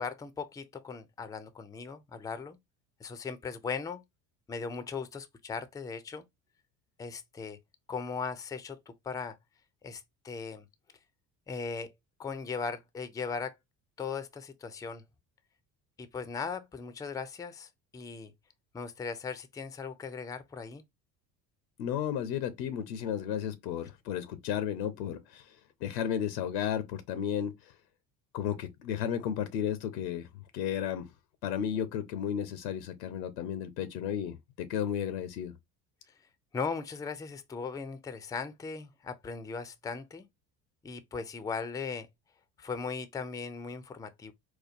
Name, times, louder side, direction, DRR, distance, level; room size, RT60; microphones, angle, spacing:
voice 1, 0.0-2.6 3.0-4.0 4.5-6.2 7.0-7.6 7.9-9.4 9.8-10.7 11.5-11.9 12.2-13.6 14.0-15.0 16.0-18.3 18.7-20.8 36.5-40.3 40.8-42.1 42.6-44.3, left 5 dB, 10° left, 0.4 m, -38 dB
voice 2, 21.8-25.5 25.8-27.7 28.3-30.3 30.5-31.1 31.4-35.5, left 9 dB, 75° left, 0.7 m, -33 dB
4.4 x 2.2 x 2.5 m
hypercardioid pair, 60°, 50 cm